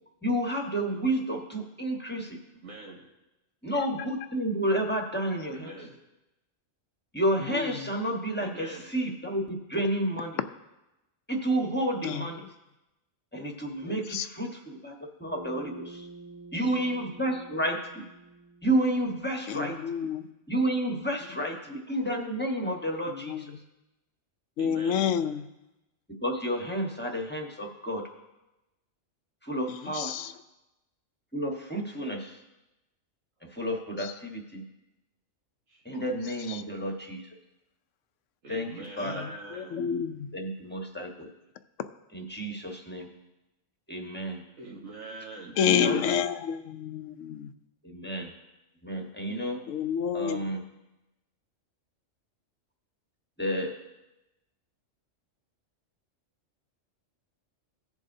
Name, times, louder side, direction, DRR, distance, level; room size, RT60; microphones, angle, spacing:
voice 1, 0.2-2.4 3.6-5.7 7.1-10.4 11.3-12.4 13.3-16.1 16.5-18.0 18.6-19.8 20.5-23.5 26.2-28.0 29.4-30.1 31.3-32.4 33.4-34.6 35.8-37.3 38.5-38.7 39.0-39.2 40.3-41.3 42.1-43.1 43.9-44.4 45.6-46.0 47.8-48.3 48.8-49.6 50.1-50.6 53.4-53.7, right 1 dB, 10° left, 1 dB, 1.1 m, -30 dB
voice 2, 2.6-3.0 5.5-5.9 8.4-8.8 24.6-25.0 29.5-29.6 35.7-35.8 38.4-39.9 40.7-40.8 44.6-45.6, right 2 dB, 80° right, -2 dB, 1.6 m, -43 dB
voice 3, 7.5-7.8 12.0-12.5 13.8-14.3 19.5-20.3 23.1-23.6 24.6-25.4 29.7-30.3 34.0-34.1 35.9-36.0 36.5-36.6 39.0-40.3 45.6-47.5 49.0-49.4 49.7-50.5, left 8 dB, 75° left, 11 dB, 0.9 m, -30 dB
Bass guitar, 15.3-19.7, right 3 dB, 25° right, 0.4 m, -48 dB
18.0 x 7.2 x 2.7 m, 0.97 s
omnidirectional pair, 1.3 m